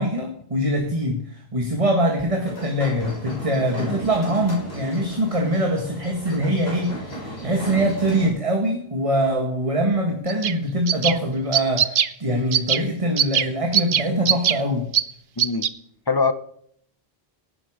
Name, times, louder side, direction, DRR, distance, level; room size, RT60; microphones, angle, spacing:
voice 1, 0.0-14.9, equal, 30° right, 1.8 m, -23 dB
sound 1, 2.4-8.3, equal, 70° left, 6.6 m, -35 dB
sound 2, 10.3-10.5 10.9-11.2 11.5-12.1 12.5-12.8 13.2-13.5 13.7-14.6 14.9-15.0 15.4-15.7, right 8 dB, 55° right, 0.8 m, -20 dB
voice 2, 15.4-15.7 16.1-16.3, left 4 dB, 25° left, 0.8 m, -22 dB
17.5 x 9.8 x 5.0 m
omnidirectional pair, 1.1 m